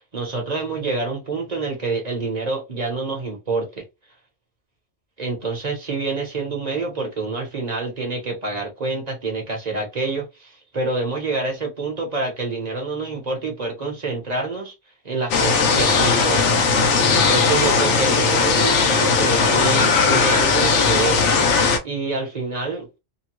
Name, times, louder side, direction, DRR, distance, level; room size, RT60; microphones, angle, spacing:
voice 1, 0.1-3.8 5.2-14.7 15.0-16.6 17.3-21.2 21.8-22.9, right 3 dB, 40° right, 0.9 m, -27 dB
sound 1, 15.3-21.8, left 4 dB, 80° left, 1.0 m, -18 dB
2.9 x 2.2 x 2.9 m
omnidirectional pair, 1.2 m